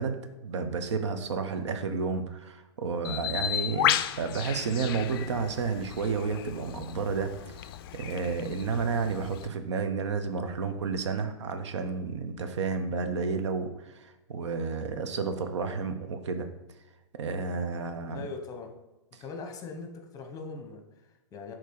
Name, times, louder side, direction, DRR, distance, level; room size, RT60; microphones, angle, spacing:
voice 1, 0.0-16.5 17.1-18.2, right 5 dB, 70° right, 7 dB, 0.8 m, -31 dB
Bird, 3.0-9.5, left 12 dB, 50° left, 0.4 m, -33 dB
voice 2, 18.1-18.8 19.2-21.5, left 4 dB, 25° left, 4 dB, 1.0 m, -41 dB
6.7 x 3.0 x 4.7 m, 1.0 s
hypercardioid pair, 120°, 15 cm